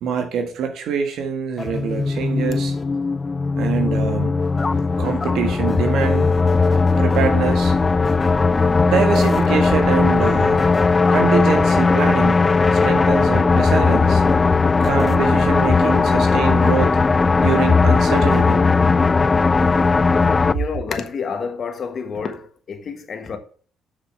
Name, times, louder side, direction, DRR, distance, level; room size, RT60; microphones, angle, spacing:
voice 1, 0.0-2.7 3.6-4.4 5.0-6.3 6.7-7.7 8.9-10.6 11.1-12.4 12.7-14.2 14.8-16.9 17.4-18.6, right 6 dB, 80° right, 1.4 m, -24 dB
sound 1, 1.6-20.5, left 4 dB, 30° left, 0.3 m, -17 dB
voice 2, 20.5-23.4, left 6 dB, 50° left, 1.4 m, -29 dB
6.6 x 5.9 x 5.8 m
cardioid pair, 90°, 0 cm